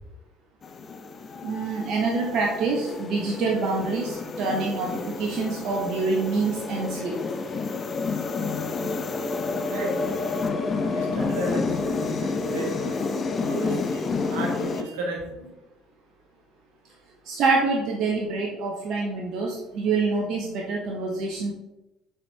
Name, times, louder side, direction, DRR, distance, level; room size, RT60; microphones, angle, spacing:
sound 1, 0.6-14.8, left 4 dB, 40° left, 0.7 m, -29 dB
voice 1, 1.4-7.1 17.3-21.5, right 4 dB, 55° right, -1 dB, 0.9 m, -26 dB
voice 2, 9.7-10.2 10.9-13.1 13.4-15.5, right 1 dB, 75° right, 0 dB, 1.5 m, -33 dB
7.1 x 5.0 x 2.8 m, 0.97 s
hypercardioid pair, 60°, 0 cm